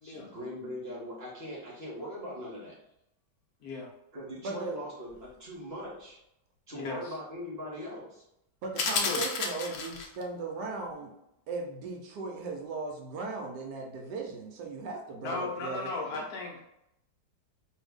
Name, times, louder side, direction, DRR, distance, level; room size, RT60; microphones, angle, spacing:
voice 1, 0.0-2.7 4.1-6.2 6.7-8.2 15.3-15.4 16.1-16.2, equal, 45° right, -5 dB, 0.9 m, -41 dB
voice 2, 4.4-4.8 8.6-11.1 11.5-15.9, right 3 dB, 75° right, 1 dB, 1.1 m, -37 dB
voice 3, 6.7-7.1 9.0-9.3 15.2-16.6, left 3 dB, 70° left, -1 dB, 1.0 m, -36 dB
sound 1, 8.8-10.2, left 4 dB, 85° left, 0.6 m, -31 dB
2.7 x 2.6 x 3.4 m, 0.82 s
omnidirectional pair, 1.9 m